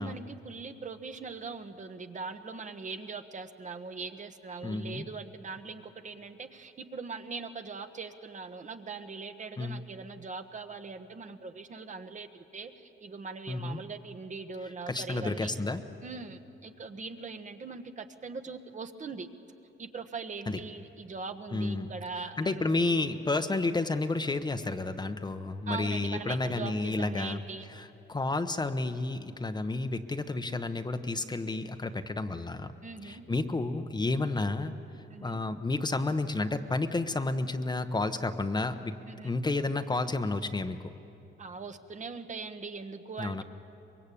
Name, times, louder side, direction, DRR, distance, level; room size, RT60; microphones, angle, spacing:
voice 1, 0.0-15.5 16.0-19.3 19.8-22.7 25.7-27.7 32.8-33.2 35.1-35.4 39.1-39.4 41.4-43.4, right 4 dB, 40° right, 7 dB, 1.3 m, -41 dB
voice 2, 4.6-5.0 9.6-9.8 13.5-13.8 14.9-15.8 20.5-20.6 21.5-21.9 22.4-27.4 27.7-32.7 33.0-34.7 35.2-38.9 39.2-40.9 43.2-43.4, left 2 dB, 20° left, 8 dB, 1.0 m, -31 dB
24.0 x 21.5 x 8.6 m, 2.8 s
cardioid pair, 90°, 20 cm